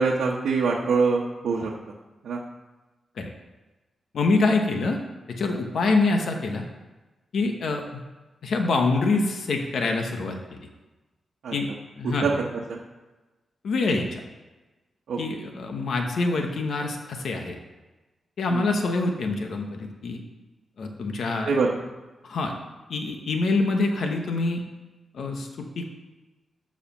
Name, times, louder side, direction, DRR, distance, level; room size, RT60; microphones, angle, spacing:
voice 1, 0.0-1.7 2.2-2.4 11.4-11.5 12.0-12.8 15.1-15.2 18.5-18.7 21.4-21.8, right 4 dB, 80° right, -4 dB, 1.1 m, -24 dB
voice 2, 4.1-5.0 5.3-6.6 7.3-8.0 8.4-10.6 11.5-11.7 12.0-12.3 13.6-14.2 15.2-17.6 18.4-20.2 20.8-21.5 22.2-22.5 22.9-24.6 25.1-25.8, left 3 dB, 65° left, 3 dB, 1.1 m, -25 dB
14.0 x 4.9 x 6.0 m, 1.2 s
wide cardioid pair, 160°, 0 cm